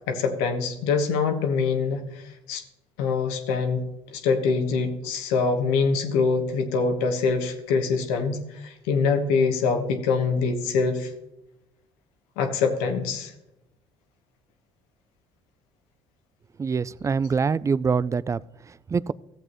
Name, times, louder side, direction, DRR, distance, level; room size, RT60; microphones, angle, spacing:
voice 1, 0.1-2.6 3.0-3.8 4.1-11.1 12.4-13.3, left 4 dB, 85° left, 6 dB, 1.3 m, -24 dB
voice 2, 16.6-18.4 18.7-19.1, right 5 dB, 25° right, 21 dB, 0.3 m, -25 dB
14.5 x 7.9 x 3.1 m, 0.91 s
hypercardioid pair, 65°, 13 cm